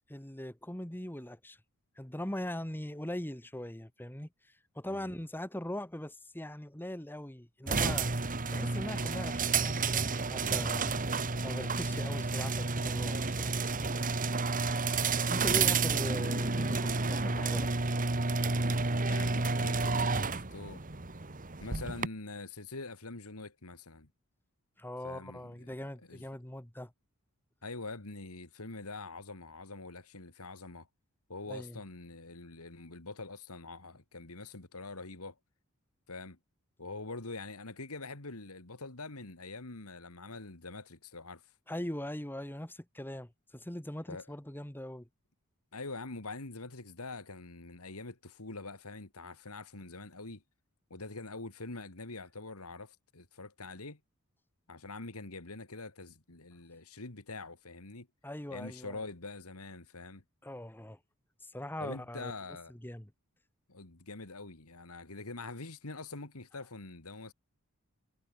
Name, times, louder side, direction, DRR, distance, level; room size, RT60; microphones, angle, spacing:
voice 1, 0.1-1.6 2.0-4.3 4.7-8.1 8.5-10.9 11.4-13.5 15.3-17.7 24.8-26.9 31.5-31.8 41.7-45.1 58.2-59.0 60.4-61.0 61.4-62.3 62.7-63.1, left 1 dB, 10° left, 1.6 m, -41 dB
sound 1, 7.7-22.1, right 4 dB, 40° right, 1.6 m, -31 dB
voice 2, 19.0-20.8 21.6-24.1 25.0-25.8 26.1-26.2 27.6-30.9 31.3-35.4 36.1-36.4 36.8-41.4 44.1-44.4 45.7-50.4 50.9-54.0 54.7-58.1 58.5-60.2 61.8-62.7 63.7-67.3, left 3 dB, 80° left, 2.7 m, -44 dB
head